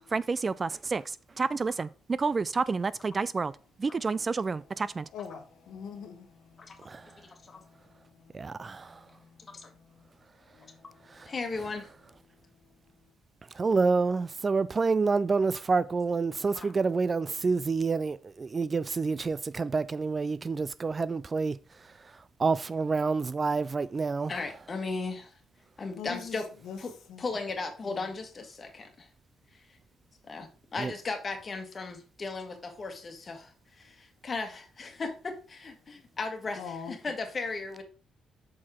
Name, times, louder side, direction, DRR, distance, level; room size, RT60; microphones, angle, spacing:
voice 1, 0.1-1.0 1.4-1.9 2.2-3.5 3.8-5.0 6.9-7.0 8.3-8.9 13.6-21.6 22.4-24.3 30.8-30.9, right 4 dB, 30° right, 0.3 m, -28 dB
voice 2, 3.9-10.1 10.5-11.3 26.0-26.8 27.1-27.2 27.8-28.1 36.5-36.9, left 7 dB, 85° left, 1.0 m, -46 dB
voice 3, 7.3-7.6 9.5-9.7 11.3-11.9 16.5-16.7 24.3-25.4 25.8-26.5 26.8-26.9 27.2-29.1 29.5-29.6 30.2-37.8, left 3 dB, 35° left, 1.6 m, -36 dB
6.3 x 4.7 x 4.3 m
cardioid pair, 90°, 0 cm